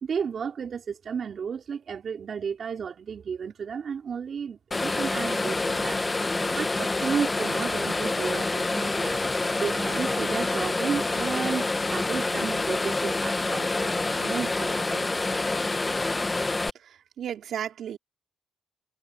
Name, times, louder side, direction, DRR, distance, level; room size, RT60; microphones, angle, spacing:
voice 1, 0.0-6.0 6.5-9.3 9.5-15.0, right 6 dB, 50° right, 4.0 m, -33 dB
sound 1, 4.7-16.7, left 2 dB, 20° left, 1.1 m, -27 dB
voice 2, 16.8-18.0, right 9 dB, 65° right, 4.5 m, -34 dB
cardioid pair, 90°, 0 cm